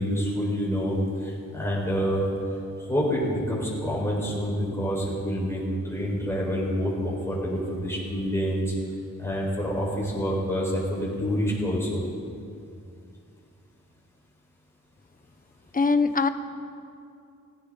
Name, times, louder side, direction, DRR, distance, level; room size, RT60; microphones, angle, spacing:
voice 1, 0.0-2.2 2.8-8.6 9.2-12.0, equal, 10° left, -5 dB, 4.5 m, -27 dB
voice 2, 15.7-16.3, left 4 dB, 25° left, 10 dB, 0.7 m, -21 dB
19.0 x 16.5 x 3.8 m, 2.5 s
wide cardioid pair, 135°, 32 cm